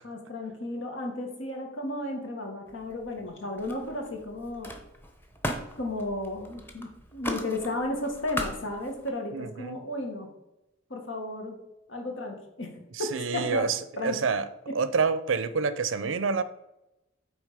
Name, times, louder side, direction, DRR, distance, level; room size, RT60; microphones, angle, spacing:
voice 1, 0.0-4.7 5.8-10.3 10.9-11.6 11.9-12.7 13.0-13.7 14.0-14.1, left 2 dB, 75° left, 1.7 m, -34 dB
Camera, 2.7-3.3 3.6-9.1, equal, 10° left, 0.9 m, -38 dB
voice 2, 9.3-9.8 12.9-14.5 14.7-16.4, right 5 dB, 85° right, 0.6 m, -28 dB
8.9 x 3.6 x 5.0 m
head